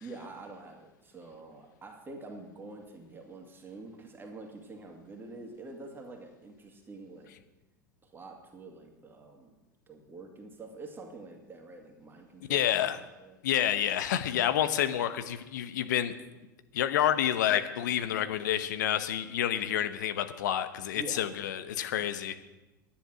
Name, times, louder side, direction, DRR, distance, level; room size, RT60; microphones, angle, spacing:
voice 1, 0.0-7.3 8.0-9.5 9.9-13.4 20.9-21.3 22.0-22.2, right 3 dB, 20° right, 2 dB, 2.2 m, -46 dB
voice 2, 12.5-13.0 13.4-16.1 16.7-22.4, left 11 dB, 65° left, 11 dB, 1.0 m, -29 dB
10.5 x 10.5 x 6.2 m, 1.1 s
figure-of-eight pair, 85°, 11 cm